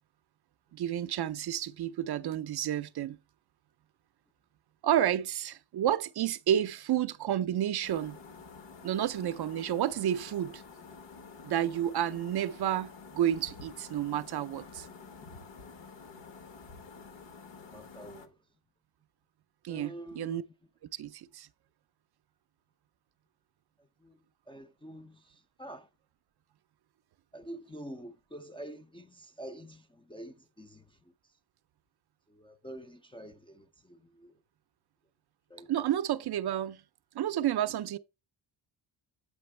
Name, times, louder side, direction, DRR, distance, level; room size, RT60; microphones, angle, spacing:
voice 1, 0.7-3.2 4.8-8.2 8.8-10.6 11.4-14.9 19.6-20.4 20.9-21.5 35.7-36.8 37.1-38.0, right 11 dB, 55° right, 0.5 m, -30 dB
sound 1, 7.8-18.3, left 4 dB, 60° left, 1.2 m, -49 dB
voice 2, 17.7-18.3 19.7-20.4 24.0-24.2 24.5-25.9 27.3-31.0 32.3-34.3 35.5-35.7, right 1 dB, 10° left, 0.3 m, -47 dB
8.6 x 5.9 x 3.1 m
wide cardioid pair, 135°, 49 cm